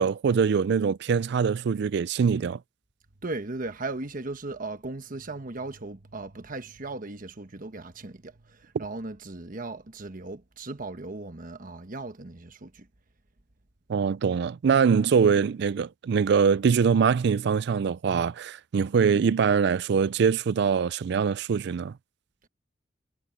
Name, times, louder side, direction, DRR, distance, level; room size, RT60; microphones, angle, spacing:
voice 1, 0.0-2.6 13.9-21.9, right 6 dB, 65° right, 0.4 m, -23 dB
voice 2, 3.2-12.9, right 2 dB, 50° right, 1.2 m, -37 dB
head